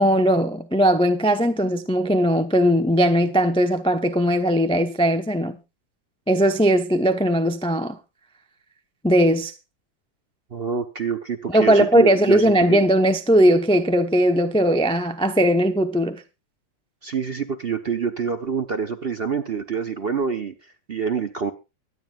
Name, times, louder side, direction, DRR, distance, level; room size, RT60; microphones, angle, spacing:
voice 1, 0.0-5.6 6.3-8.0 9.0-9.5 11.5-16.2, equal, 10° left, 0.3 m, -19 dB
voice 2, 10.5-12.8 17.0-21.5, right 6 dB, 50° right, 0.7 m, -27 dB
23.5 x 9.4 x 2.4 m
omnidirectional pair, 2.0 m